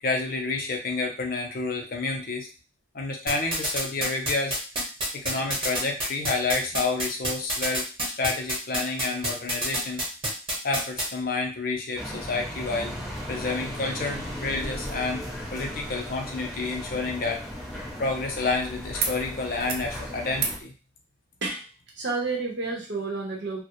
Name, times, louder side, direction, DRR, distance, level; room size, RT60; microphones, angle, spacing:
voice 1, 0.0-2.5 2.9-4.6 5.1-7.9 8.2-10.0 10.6-13.0 13.3-15.3 15.5-17.4 18.0-20.7, left 3 dB, 50° left, 2 dB, 0.5 m, -29 dB
sound 1, 3.3-11.1, right 1 dB, 30° right, 0.9 m, -27 dB
sound 2, 12.0-20.6, equal, ahead, 0.6 m, -36 dB
sound 3, 19.0-19.2 19.5-19.9 20.3-20.6 22.0-22.1, right 5 dB, 60° right, 0.4 m, -34 dB
voice 2, 21.9-23.6, right 3 dB, 85° right, -2 dB, 0.8 m, -30 dB
2.4 x 2.0 x 2.9 m, 0.34 s
head